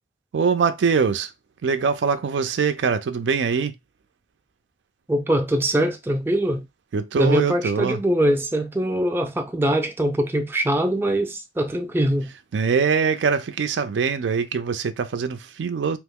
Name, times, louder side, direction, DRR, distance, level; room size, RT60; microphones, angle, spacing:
voice 1, 0.3-1.3 1.6-3.7 6.9-8.0 12.5-16.0, right 5 dB, 90° right, 0.4 m, -23 dB
voice 2, 5.1-6.6 7.2-12.3, right 1 dB, 10° right, 0.4 m, -22 dB
3.0 x 2.0 x 3.5 m
head